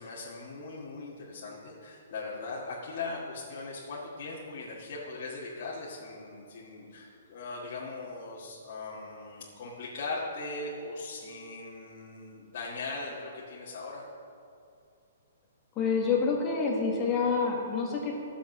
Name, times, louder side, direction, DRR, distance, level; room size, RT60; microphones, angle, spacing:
voice 1, 0.0-14.1, left 3 dB, 40° left, -7 dB, 1.7 m, -39 dB
voice 2, 15.7-18.1, left 5 dB, 15° left, -2 dB, 1.4 m, -27 dB
15.5 x 7.3 x 6.0 m, 2.5 s
hypercardioid pair, 180°, 0 cm